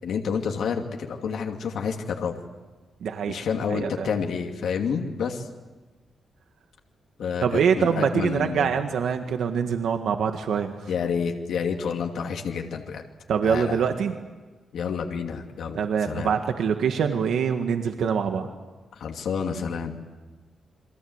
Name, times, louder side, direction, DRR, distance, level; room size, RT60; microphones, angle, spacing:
voice 1, 0.0-2.3 3.3-5.5 7.2-8.8 10.9-13.0 13.4-13.9 14.7-16.3 18.9-19.9, left 6 dB, 85° left, 2 dB, 2.6 m, -29 dB
voice 2, 3.0-3.3 3.7-4.1 7.4-10.8 13.3-14.1 15.7-18.5, right 7 dB, 85° right, 5 dB, 1.7 m, -24 dB
29.5 x 24.5 x 8.1 m, 1.3 s
wide cardioid pair, 155°, 0 cm